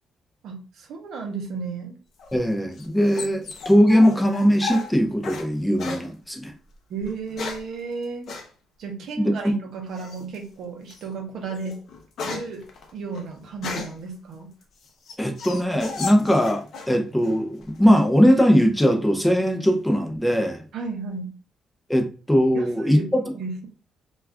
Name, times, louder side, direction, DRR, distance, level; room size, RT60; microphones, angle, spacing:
voice 1, 0.4-2.0 6.9-8.3 8.8-11.8 12.2-12.6 12.9-14.5 20.7-21.3 22.5-23.7, right 4 dB, 75° right, 0.7 m, -33 dB
sound 1, 2.2-5.5 5.8-6.1 7.0-7.7 8.3-8.5 10.0-10.4 10.9-11.1 11.5-14.1 14.6-17.0 17.2-17.8, left 4 dB, 65° left, 0.6 m, -34 dB
voice 2, 2.3-6.5 9.2-9.3 15.2-20.6 21.9-23.2, equal, 5° left, 0.5 m, -20 dB
2.3 x 2.3 x 3.4 m
cardioid pair, 90°, 0 cm